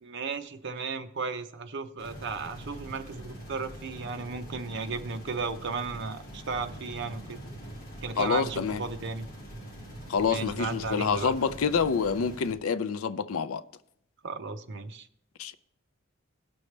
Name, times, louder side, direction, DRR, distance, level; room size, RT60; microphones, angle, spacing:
voice 1, 0.0-7.4 8.0-9.3 10.3-11.3 14.2-15.1, right 4 dB, 60° right, 0.7 m, -35 dB
sound 1, 2.0-12.5, right 1 dB, 45° left, 2.6 m, -44 dB
voice 2, 8.2-8.8 10.1-13.6 15.4-15.5, left 5 dB, 85° left, 0.5 m, -27 dB
17.5 x 6.3 x 3.3 m
head